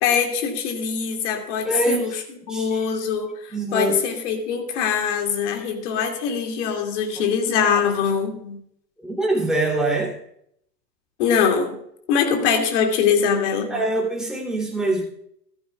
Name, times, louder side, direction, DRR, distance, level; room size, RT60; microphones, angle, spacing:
voice 1, 0.0-2.1 2.5-3.3 3.7-8.6 11.2-11.8 12.1-13.8, left 6 dB, 45° left, 4 dB, 2.5 m, -22 dB
voice 2, 1.6-2.2 2.5-2.8 3.5-4.0 9.0-10.1 13.7-15.0, right 2 dB, ahead, -3 dB, 3.0 m, -24 dB
14.5 x 13.5 x 2.4 m, 0.70 s
figure-of-eight pair, 110°, 49 cm